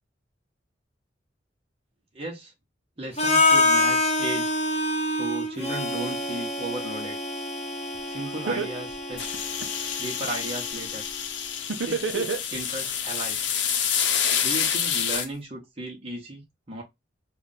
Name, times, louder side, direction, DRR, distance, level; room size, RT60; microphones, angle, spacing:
voice 1, 2.1-2.5 3.0-4.6 5.1-7.2 8.1-9.3 10.0-11.0 11.8-13.4 14.4-16.8, right 2 dB, 35° right, 1.2 m, -35 dB
Harmonica, 3.2-11.1, left 2 dB, 35° left, 0.8 m, -26 dB
Laughter, 7.9-8.0 8.5-9.9 11.7-12.9, right 4 dB, 85° right, 0.7 m, -28 dB
sound 1, 9.2-15.3, left 8 dB, 75° left, 0.7 m, -28 dB
3.1 x 2.5 x 4.0 m
head